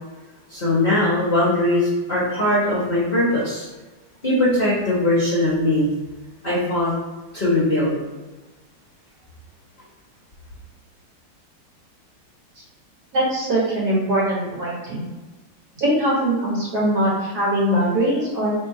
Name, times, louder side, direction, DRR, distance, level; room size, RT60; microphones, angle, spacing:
voice 1, 0.5-3.7 4.2-5.9 6.4-6.9 7.3-8.0, left 1 dB, 35° left, -9 dB, 1.1 m, -20 dB
voice 2, 13.1-15.0 15.8-18.5, right 1 dB, 50° right, -6 dB, 1.7 m, -21 dB
3.5 x 2.7 x 4.7 m, 1.2 s
omnidirectional pair, 2.3 m